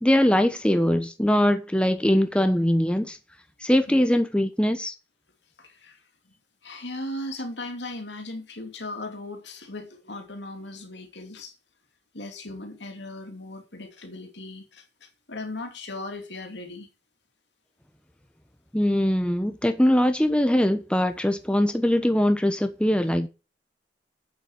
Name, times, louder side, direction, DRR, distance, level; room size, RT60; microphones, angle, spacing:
voice 1, 0.0-3.2 3.6-4.9 18.7-23.3, equal, 5° left, 1.0 m, -22 dB
voice 2, 5.6-6.0 6.6-11.5 12.1-16.9, left 2 dB, 70° left, 2.8 m, -37 dB
8.6 x 7.2 x 7.4 m
head